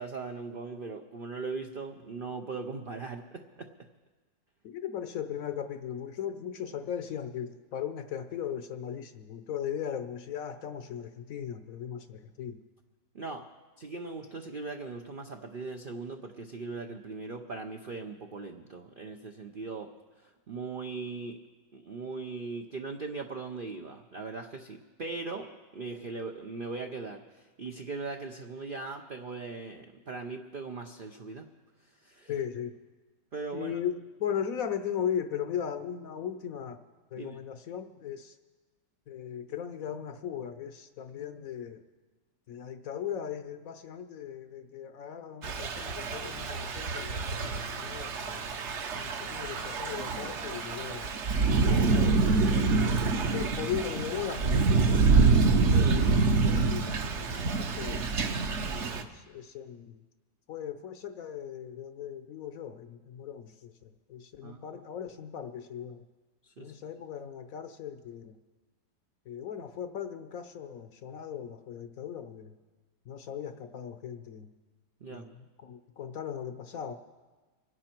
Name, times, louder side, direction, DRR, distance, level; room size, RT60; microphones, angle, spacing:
voice 1, 0.0-3.7 13.1-13.5 13.8-19.9 20.2-21.4 21.7-31.5 32.0-32.3 33.3-33.7 37.2-37.4 64.4-64.8 66.4-66.7 75.0-75.3, right 4 dB, 90° right, 4 dB, 0.4 m, -39 dB
voice 2, 4.6-12.6 32.3-32.7 33.5-36.8 37.1-38.3 39.1-41.8 42.5-48.5 48.9-52.2 53.1-54.7 55.5-58.0 58.7-60.0 60.5-66.0 66.6-68.3 69.3-72.5 73.1-74.5 75.1-76.9, left 9 dB, 65° left, 9 dB, 0.9 m, -38 dB
Thunder / Rain, 45.4-59.0, right 4 dB, 50° right, 0.9 m, -26 dB
25.0 x 10.5 x 4.5 m, 1.3 s
omnidirectional pair, 1.9 m